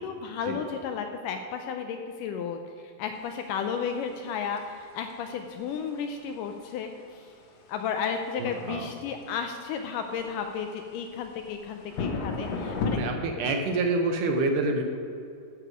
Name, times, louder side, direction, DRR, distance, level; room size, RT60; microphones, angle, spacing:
voice 1, 0.0-7.3 7.7-13.0, left 6 dB, 80° left, 5 dB, 1.9 m, -33 dB
sound 1, 3.2-13.0, left 4 dB, 60° left, 1.9 m, -37 dB
voice 2, 8.4-8.9 12.9-14.8, right 2 dB, 75° right, 4 dB, 2.1 m, -27 dB
13.0 x 6.7 x 5.0 m, 2.6 s
omnidirectional pair, 4.3 m